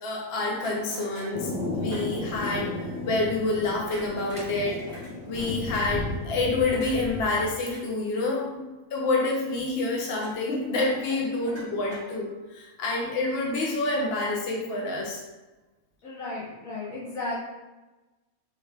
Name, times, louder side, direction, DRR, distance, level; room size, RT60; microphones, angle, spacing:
voice 1, 0.0-4.8 5.2-8.6 8.9-15.2, left 2 dB, 55° left, -2 dB, 0.9 m, -28 dB
sound 1, 0.5-1.4 1.9-2.1 3.9-5.1 6.7-7.8 10.1-10.4 10.7-12.4, right 1 dB, 20° left, 1.6 m, -45 dB
Thunder, 1.3-7.4, left 1 dB, 5° right, 0.7 m, -34 dB
voice 2, 16.0-17.4, left 2 dB, 85° left, -8 dB, 1.4 m, -34 dB
4.5 x 3.3 x 3.3 m, 1.1 s
omnidirectional pair, 1.4 m